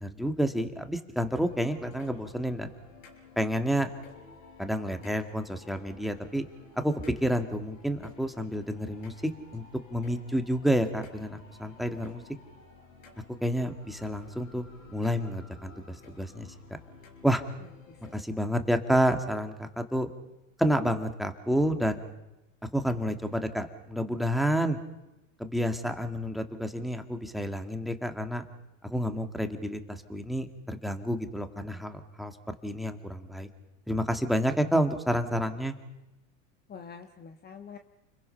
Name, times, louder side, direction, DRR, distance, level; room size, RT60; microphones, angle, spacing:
voice 1, 0.0-2.7 3.4-3.9 4.6-6.4 6.8-6.9 7.2-9.1 9.5-9.6 9.9-12.2 13.4-16.5 17.2-17.4 18.1-20.1 20.6-22.0 22.7-24.8 25.4-28.4 28.8-32.3 32.6-33.5 33.9-35.8, equal, ahead, 7 dB, 2.0 m, -29 dB
sound 1, 1.3-18.2, left 4 dB, 90° left, 5.5 m, -53 dB
voice 2, 17.9-18.2 36.7-37.8, left 6 dB, 25° left, 6 dB, 1.2 m, -46 dB
29.5 x 22.5 x 5.8 m, 0.97 s
hypercardioid pair, 110°, 38 cm